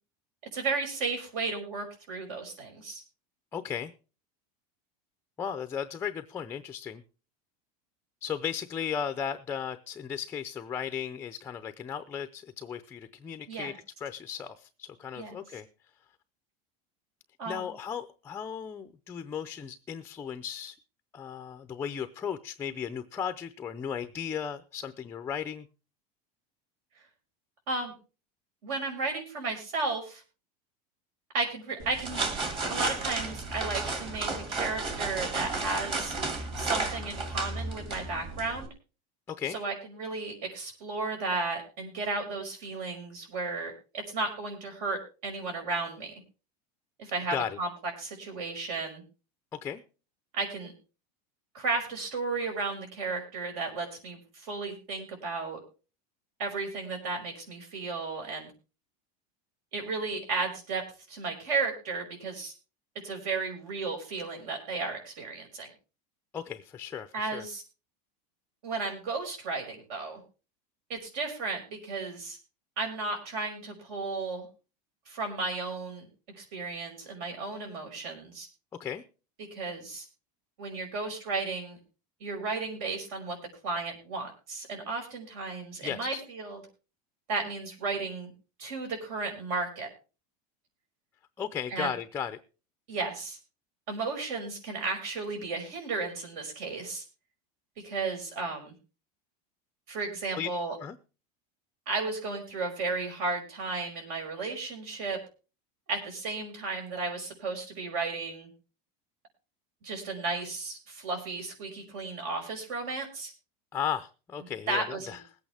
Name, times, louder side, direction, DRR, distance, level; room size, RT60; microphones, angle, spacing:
voice 1, 0.5-3.0 13.5-13.7 15.2-15.4 17.4-17.7 27.7-27.9 28.6-30.2 31.3-32.3 32.7-36.2 36.6-38.7 39.5-46.1 47.0-49.0 50.3-50.7 51.5-55.6 56.4-58.5 59.7-60.8 61.1-62.5 63.0-65.7 67.1-67.6 68.6-70.2 70.9-72.4 72.8-74.5 75.1-76.1 76.4-78.5 79.5-80.1 80.6-81.8 82.2-83.4 83.6-86.6 87.3-88.3 88.6-89.9 91.7-91.9 92.9-93.4 93.9-97.0 97.8-98.7 99.9-100.8 101.9-105.2 105.9-108.5 109.8-113.3 114.7-115.2, right 3 dB, 65° right, 4 dB, 5.8 m, -34 dB
voice 2, 3.5-3.9 5.4-7.0 8.2-15.7 17.5-20.8 21.1-25.7 39.3-39.6 47.3-47.6 49.5-49.8 66.3-67.5 78.8-79.0 85.8-86.2 91.4-92.4 100.4-100.5 100.8-101.0 113.7-115.2, left 8 dB, 10° left, 9 dB, 0.5 m, -36 dB
sound 1, 31.8-38.7, right 3 dB, 25° right, 2.2 m, -33 dB
21.0 x 8.8 x 3.4 m, 0.34 s
supercardioid pair, 165°, 20 cm